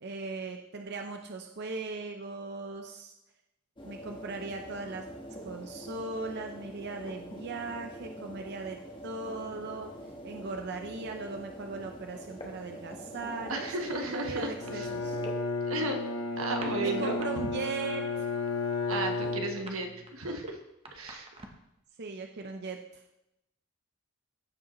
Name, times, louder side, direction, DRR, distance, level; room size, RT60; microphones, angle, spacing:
voice 1, 0.0-3.1 3.8-5.1 5.4-8.8 9.0-9.9 10.2-15.2 16.8-18.3 22.0-23.0, right 3 dB, 55° right, 4 dB, 0.6 m, -38 dB
sound 1, 3.8-15.3, equal, 25° left, 1.1 m, -44 dB
voice 2, 13.5-14.9 15.7-16.0 16.4-17.2 18.9-20.6 20.9-21.3, right 2 dB, 90° right, 4 dB, 1.1 m, -34 dB
Bowed string instrument, 14.6-20.0, left 3 dB, 85° left, 1.1 m, -33 dB
sound 2, 16.5-17.3 17.6-17.9 18.2-21.7, right 2 dB, 30° right, 0.9 m, -48 dB
14.5 x 5.0 x 3.0 m, 0.87 s
head